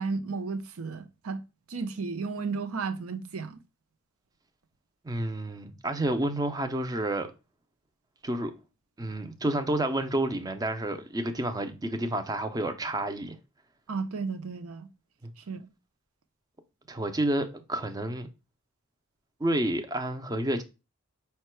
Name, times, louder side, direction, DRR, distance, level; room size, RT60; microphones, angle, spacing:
voice 1, 0.0-1.4 1.7-3.6 13.9-14.9 15.4-15.7, right 4 dB, 70° right, 0.6 m, -33 dB
voice 2, 5.0-7.3 8.2-8.5 9.0-13.4 15.2-15.3 16.9-18.3 19.4-20.6, right 1 dB, 15° right, 0.5 m, -30 dB
5.5 x 2.2 x 4.3 m
head